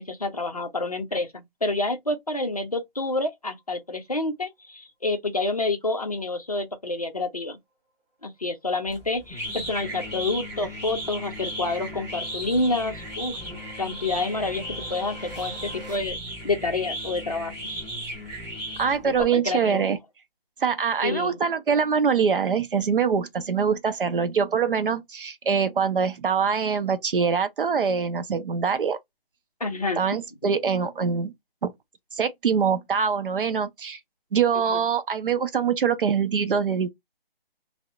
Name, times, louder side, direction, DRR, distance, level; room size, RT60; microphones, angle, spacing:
voice 1, 0.0-7.6 8.2-13.4 13.8-14.6 14.9-16.2 16.4-17.8 19.0-19.9 21.0-21.4 29.6-30.0 34.7-34.8, left 2 dB, 40° left, 0.5 m, -28 dB
sound 1, 8.9-19.2, equal, 15° right, 1.4 m, -36 dB
sound 2, 9.4-16.0, right 1 dB, 45° right, 1.5 m, -47 dB
voice 2, 18.8-20.0 20.6-29.0 30.0-31.3 31.6-31.7 32.1-34.0 34.3-36.9, right 6 dB, 60° right, 0.5 m, -24 dB
2.6 x 2.0 x 2.3 m
hypercardioid pair, 175°, 30 cm